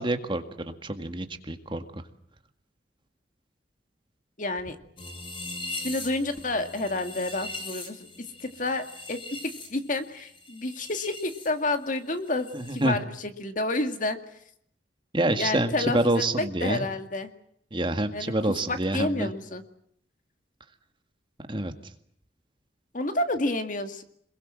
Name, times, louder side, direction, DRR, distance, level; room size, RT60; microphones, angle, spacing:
voice 1, 0.0-2.0 12.5-13.0 15.1-16.8 17.7-19.3 21.5-21.7, right 1 dB, 25° right, 8 dB, 1.9 m, -27 dB
voice 2, 4.4-4.8 5.8-8.1 8.4-14.2 15.4-17.3 18.1-18.3 18.7-19.6 22.9-24.0, left 2 dB, 45° left, 8 dB, 2.2 m, -30 dB
sound 1, 5.0-11.5 11.7-12.9, left 2 dB, 30° left, 5.9 m, -41 dB
26.5 x 22.0 x 7.6 m, 0.67 s
head